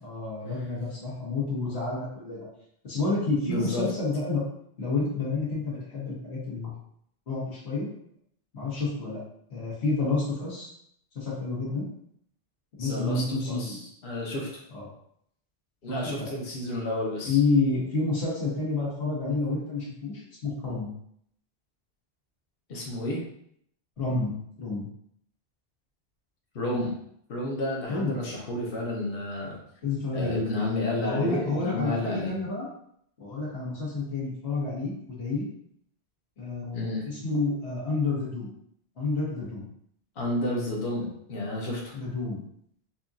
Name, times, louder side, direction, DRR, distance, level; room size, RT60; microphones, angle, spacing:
voice 1, 0.0-2.5 2.8-4.4 4.8-6.7 7.3-7.9 8.5-9.2 9.5-10.7 11.1-11.9 12.8-13.8 14.7-14.9 16.0-16.3 17.2-20.9 24.0-24.9 27.9-28.1 29.8-30.5 31.0-32.6 33.2-35.5 36.4-38.5 39.0-39.7 41.9-42.4, left 3 dB, 90° left, -8 dB, 1.5 m, -29 dB
voice 2, 3.4-3.9 12.8-14.5 15.8-17.4 22.7-23.2 26.5-26.9 27.3-29.6 30.1-32.3 36.7-37.1 40.2-41.9, left 1 dB, 65° left, -3 dB, 1.0 m, -31 dB
4.4 x 2.6 x 2.4 m, 0.68 s
omnidirectional pair, 1.1 m